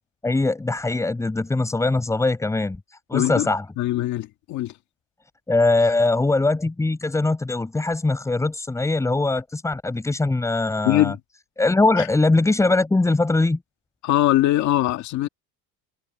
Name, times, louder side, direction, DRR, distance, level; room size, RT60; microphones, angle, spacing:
voice 1, 0.2-3.7 5.5-11.1 11.6-13.6, left 2 dB, 10° left, 5.6 m, -21 dB
voice 2, 3.1-3.5 3.8-4.7 10.8-11.2 12.0-12.1 14.0-15.3, left 14 dB, 55° left, 2.1 m, -21 dB
cardioid pair, 180°, 35 cm